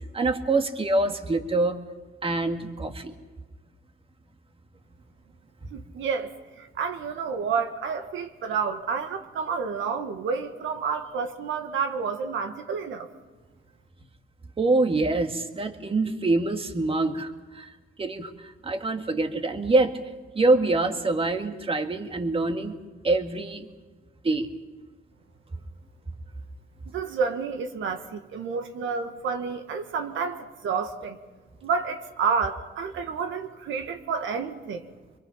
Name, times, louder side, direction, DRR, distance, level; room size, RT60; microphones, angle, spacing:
voice 1, 0.1-1.8 2.2-3.2 5.6-5.7 14.6-17.7 18.0-19.9 20.3-22.8 23.0-23.7 24.2-24.5, right 2 dB, 30° right, 1.9 m, -25 dB
voice 2, 5.7-13.1 26.9-31.2 31.6-34.9, right 5 dB, 80° right, 1.7 m, -30 dB
25.5 x 22.0 x 5.8 m
cardioid pair, 90°, 20 cm